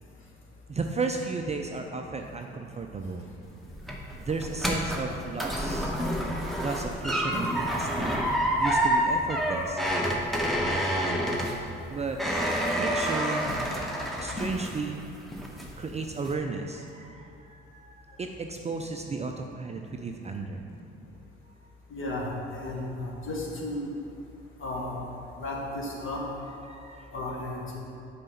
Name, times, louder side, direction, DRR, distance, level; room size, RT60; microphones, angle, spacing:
voice 1, 0.7-3.3 4.2-5.9 6.6-8.2 8.6-9.8 10.6-11.3 11.9-12.2 12.7-13.5 14.2-15.1 15.8-20.6 26.7-27.1, right 4 dB, 25° right, 3 dB, 0.4 m, -34 dB
sound 1, 3.4-15.0 15.3-15.8 16.2-16.3, equal, ahead, 1.0 m, -28 dB
voice 2, 21.9-23.8 24.6-25.0 25.4-26.2 27.1-27.8, left 2 dB, 45° left, -2 dB, 1.5 m, -34 dB
5.4 x 4.1 x 5.3 m, 2.7 s
hypercardioid pair, 50°, 29 cm